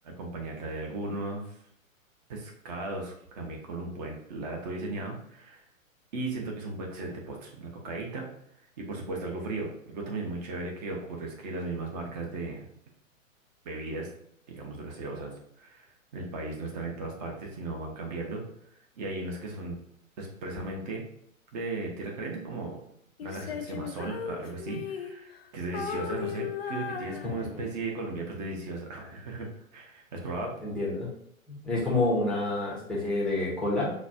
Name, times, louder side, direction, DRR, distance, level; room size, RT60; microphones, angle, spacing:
voice 1, 0.0-1.6 2.3-5.6 6.1-8.3 8.8-12.6 13.6-14.1 14.5-15.3 15.6-18.4 19.0-19.8 20.2-21.0 21.5-22.8 23.2-29.5 29.7-30.5, right 2 dB, 30° right, 1 dB, 0.9 m, -36 dB
Female singing, 23.2-25.4 25.7-27.8, left 7 dB, 45° left, 0.4 m, -37 dB
voice 2, 30.6-31.1 31.6-33.9, left 2 dB, ahead, -7 dB, 0.7 m, -28 dB
6.0 x 2.3 x 2.6 m, 0.70 s
figure-of-eight pair, 115°, 42 cm